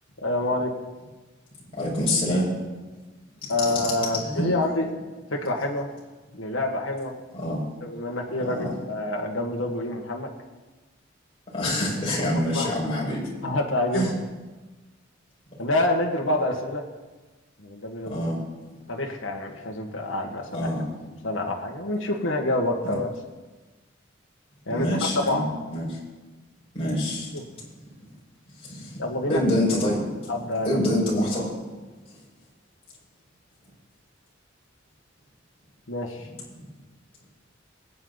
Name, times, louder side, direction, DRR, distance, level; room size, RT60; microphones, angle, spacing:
voice 1, 0.2-0.7 3.5-4.9 5.3-5.9 6.3-7.2 7.8-10.3 12.2-12.3 12.5-12.7 13.4-14.1 15.6-16.8 17.6-18.2 18.9-20.7 21.2-23.1 24.7-24.9 25.3-25.5 29.0-29.4 30.3-30.8 35.9-36.3, left 1 dB, 75° left, 0 dB, 1.7 m, -27 dB
voice 2, 1.8-2.5 3.7-3.9 4.1-4.5 7.3-7.6 8.4-8.7 11.5-13.3 13.9-14.1 18.1-18.4 20.5-20.8 24.7-26.0 26.7-27.3 28.0-28.1 28.6-29.0 29.3-30.2 30.6-31.6, left 1 dB, 30° left, -6 dB, 5.6 m, -26 dB
21.5 x 9.7 x 4.1 m, 1.2 s
head